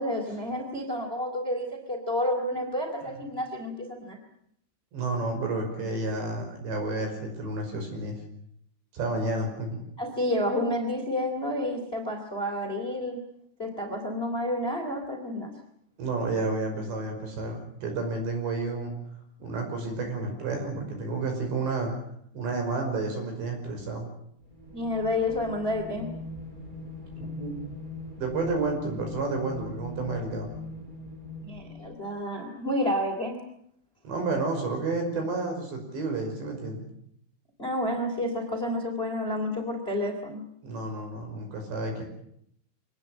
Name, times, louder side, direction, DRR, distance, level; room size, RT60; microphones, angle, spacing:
voice 1, 0.0-4.2 10.0-13.2 13.6-15.5 24.7-26.1 31.4-33.4 37.6-40.4, left 1 dB, 15° left, 4 dB, 2.8 m, -30 dB
voice 2, 4.9-8.2 8.9-9.8 16.0-18.9 19.4-21.9 22.3-24.1 27.2-27.5 28.2-30.5 34.0-36.8 40.6-42.0, right 3 dB, 60° right, 4 dB, 7.6 m, -30 dB
sound 1, 24.4-32.1, left 2 dB, 10° right, 6.4 m, -41 dB
25.0 x 19.5 x 8.8 m, 0.72 s
omnidirectional pair, 5.9 m